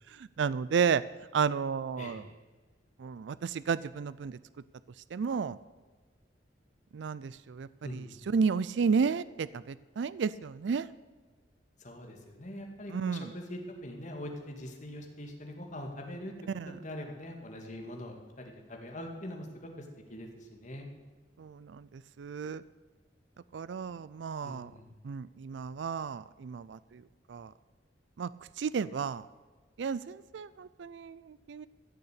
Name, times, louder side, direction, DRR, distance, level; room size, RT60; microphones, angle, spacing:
voice 1, 0.1-1.0 1.3-2.3 3.0-4.4 5.1-5.6 6.9-10.9 12.9-13.3 16.5-16.8 21.4-22.6 23.5-24.7 25.0-27.0 27.3-27.5 28.2-28.3 28.6-29.3 29.8-31.7, right 6 dB, 80° right, 18 dB, 0.4 m, -32 dB
voice 2, 11.8-16.3 16.7-19.8 20.1-20.9 24.4-24.8, left 1 dB, 45° left, 2 dB, 2.2 m, -43 dB
15.0 x 6.8 x 8.3 m, 1.4 s
head